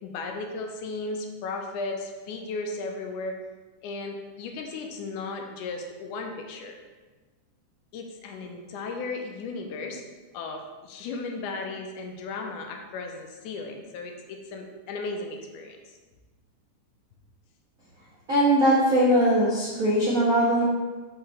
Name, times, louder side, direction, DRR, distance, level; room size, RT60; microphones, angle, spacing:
voice 1, 0.0-3.4 3.8-6.8 7.9-10.0 10.3-15.8, left 3 dB, 80° left, 3 dB, 2.2 m, -35 dB
voice 2, 18.3-20.6, right 1 dB, 45° right, -8 dB, 1.0 m, -21 dB
6.8 x 5.1 x 4.2 m, 1.3 s
omnidirectional pair, 3.6 m